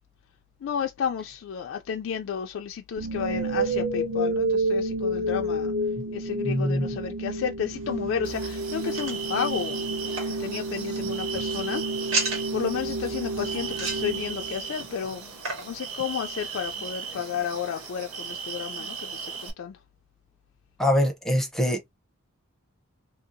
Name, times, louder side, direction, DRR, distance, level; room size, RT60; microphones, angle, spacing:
voice 1, 0.6-5.7 6.1-11.8 12.5-15.3 15.6-19.8, left 7 dB, 60° left, 0.3 m, -32 dB
sound 1, 3.0-15.0, right 1 dB, 55° right, 0.6 m, -30 dB
voice 2, 6.4-6.9 20.8-21.9, left 1 dB, ahead, 0.6 m, -24 dB
sound 2, 7.7-17.5, right 3 dB, 70° right, 1.5 m, -38 dB
sound 3, 8.2-19.5, right 6 dB, 85° right, 0.8 m, -37 dB
2.7 x 2.7 x 2.5 m
head